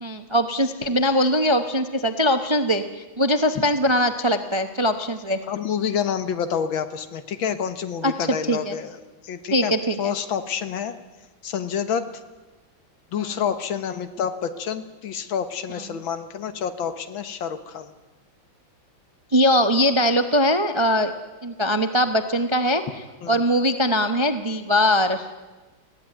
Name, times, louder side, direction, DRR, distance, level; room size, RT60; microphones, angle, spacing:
voice 1, 0.0-5.4 8.0-8.1 8.5-8.8 9.5-10.1 13.2-13.4 19.3-21.1 21.4-22.8 23.3-25.2, equal, 30° right, 8 dB, 0.5 m, -21 dB
voice 2, 5.5-9.7 10.0-10.9 11.4-12.1 13.1-17.9 23.2-23.4, left 7 dB, 80° left, 10 dB, 2.1 m, -28 dB
21.0 x 15.5 x 9.3 m, 1.2 s
omnidirectional pair, 2.2 m